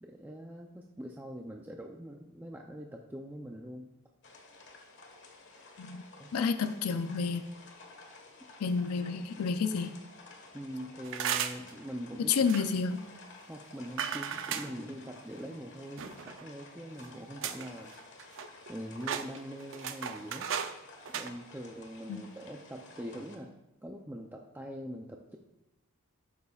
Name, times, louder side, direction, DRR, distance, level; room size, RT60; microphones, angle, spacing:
voice 1, 0.0-3.9 6.2-6.3 10.5-12.5 13.4-18.0 18.7-20.5 21.1-23.5 23.8-25.4, equal, 10° right, 1 dB, 0.5 m, -43 dB
sound 1, 4.2-23.4, left 3 dB, 55° left, 1.4 m, -53 dB
voice 2, 6.3-7.4 8.6-10.0 12.2-13.0 22.1-22.2, left 5 dB, 85° left, 10 dB, 0.5 m, -30 dB
sound 2, 11.0-11.7 12.4-12.8 14.0-14.7 16.0-16.5 17.0-17.1 17.4-17.7 18.0-18.7 19.0-20.7 21.0-21.3, right 8 dB, 60° right, 0.6 m, -35 dB
12.0 x 8.5 x 2.4 m, 0.90 s
head